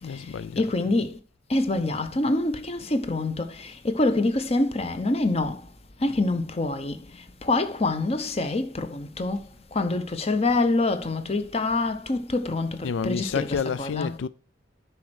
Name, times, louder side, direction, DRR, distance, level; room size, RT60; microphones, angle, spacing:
voice 1, 0.0-0.7 12.8-14.3, left 6 dB, 85° left, 0.4 m, -30 dB
voice 2, 0.6-1.1 1.5-5.6 6.0-7.0 7.4-9.4 9.7-14.1, left 2 dB, 35° left, 0.8 m, -25 dB
10.5 x 4.4 x 6.3 m
head